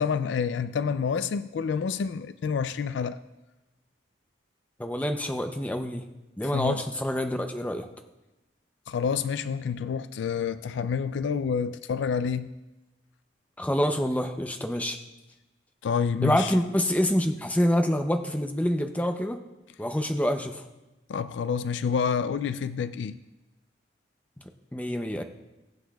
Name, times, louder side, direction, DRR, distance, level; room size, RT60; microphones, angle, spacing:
voice 1, 0.0-3.2 6.5-6.8 8.9-12.5 15.8-16.5 21.1-23.2, left 6 dB, 80° left, 0.3 m, -28 dB
voice 2, 4.8-6.0 6.4-7.9 13.6-15.0 16.2-19.4 19.8-20.6 24.7-25.2, equal, 10° left, 0.6 m, -26 dB
22.0 x 8.0 x 2.3 m
head